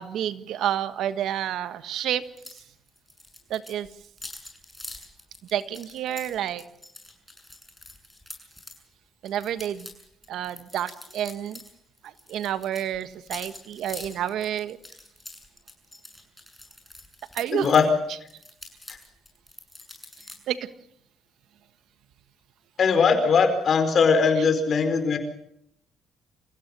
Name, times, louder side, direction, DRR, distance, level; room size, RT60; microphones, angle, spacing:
voice 1, 0.0-2.2 3.5-3.9 5.5-6.6 9.2-9.9 10.3-11.6 12.0-14.8 17.3-17.7 20.5-20.6 24.4-24.5, right 10 dB, 75° right, 12 dB, 1.4 m, -29 dB
sound 1, 2.4-2.6 2.9-8.8 9.2-11.7 12.0-17.8 18.3-20.4, left 2 dB, 10° left, 6.9 m, -44 dB
voice 2, 22.8-25.2, left 5 dB, 50° left, 8 dB, 4.8 m, -20 dB
27.5 x 16.0 x 6.9 m, 0.73 s
cardioid pair, 90°, 0 cm